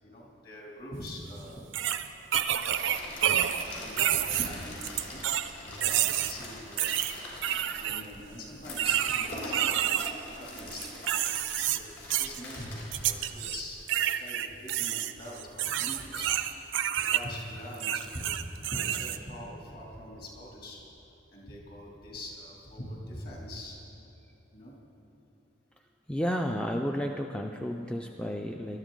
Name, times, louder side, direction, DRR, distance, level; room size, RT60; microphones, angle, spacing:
voice 1, 0.0-1.6 3.1-5.2 5.6-7.1 7.5-11.0 11.6-16.3 17.0-18.3 18.7-20.8 21.3-23.8 24.5-24.7, left 1 dB, 50° left, -3 dB, 2.8 m, -43 dB
sound 1, 1.1-1.2 1.7-3.6 4.0-5.5 5.8-6.3 6.8-8.0 8.8-10.1 10.6-11.8 12.1-12.4 12.9-13.6 13.9-17.2 17.7-19.2, right 11 dB, 85° right, 0.5 m, -29 dB
sound 2, 2.6-13.8, left 1 dB, 80° left, 3.5 m, -44 dB
voice 2, 26.1-28.8, equal, 5° left, 3 dB, 0.3 m, -32 dB
19.5 x 12.0 x 3.9 m, 2.9 s
head